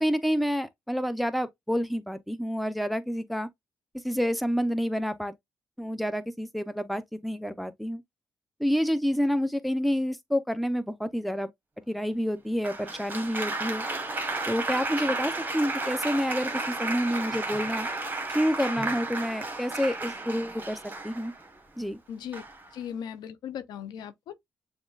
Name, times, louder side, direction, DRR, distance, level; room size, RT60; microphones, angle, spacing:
voice 1, 0.0-3.5 4.0-5.3 5.8-8.0 8.6-11.5 11.9-13.9 14.5-17.9 18.3-20.8 21.0-21.3 21.8-22.0, equal, ahead, 0.7 m, -28 dB
Applause, 12.6-21.5 22.3-22.7, right 2 dB, 25° right, 1.3 m, -33 dB
voice 2, 22.1-22.4 22.7-24.3, left 8 dB, 80° left, 0.5 m, -38 dB
7.0 x 2.4 x 2.4 m
supercardioid pair, 60°, 7 cm